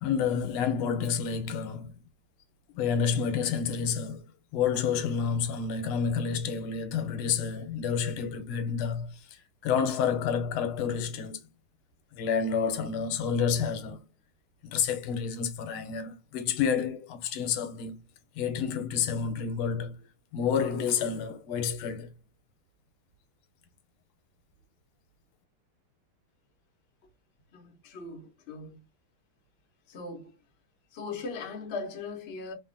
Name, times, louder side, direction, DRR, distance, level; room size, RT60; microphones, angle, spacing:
voice 1, 0.0-1.9 2.7-11.4 12.1-14.1 14.6-18.0 18.4-20.0 20.3-22.1, left 7 dB, 85° left, 1.5 m, -29 dB
voice 2, 27.5-28.8 29.9-30.3 30.9-32.5, left 4 dB, 65° left, 0.6 m, -39 dB
3.6 x 2.1 x 2.5 m
omnidirectional pair, 2.3 m